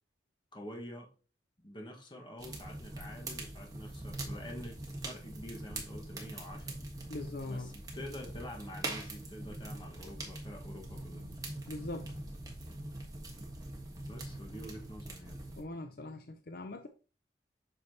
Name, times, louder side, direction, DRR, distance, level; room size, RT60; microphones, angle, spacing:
voice 1, 0.5-1.1 1.6-6.8 7.5-11.3 14.1-15.4, equal, 25° left, 1.4 m, -47 dB
sound 1, 2.4-15.6, right 2 dB, 20° right, 1.4 m, -43 dB
voice 2, 7.1-7.7 11.7-12.1 15.6-16.2 16.5-16.9, left 2 dB, 55° left, 0.6 m, -40 dB
7.8 x 5.6 x 2.8 m
head